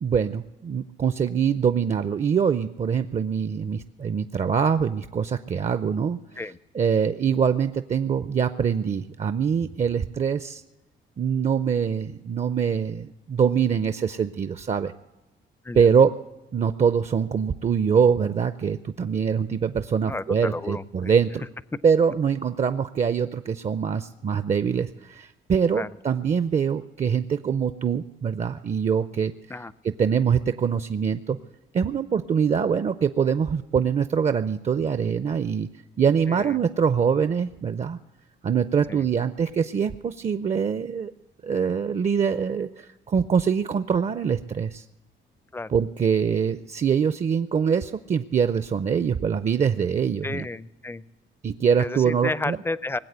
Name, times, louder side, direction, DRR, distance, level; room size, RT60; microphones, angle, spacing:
voice 1, 0.0-6.2 6.7-10.6 11.2-14.9 15.7-16.2 16.5-21.4 21.8-29.3 29.8-31.4 31.7-35.7 36.0-38.0 38.4-41.1 41.4-44.8 45.7-50.5 51.4-52.6, right 7 dB, 35° right, 12 dB, 0.5 m, -24 dB
voice 2, 20.0-21.1 25.7-25.9 29.5-29.7 36.3-36.6 38.9-39.1 45.5-45.7 50.2-51.0 51.8-53.0, left 2 dB, 10° left, 19 dB, 0.4 m, -32 dB
20.0 x 8.2 x 8.0 m, 1.1 s
cardioid pair, 90°, 20 cm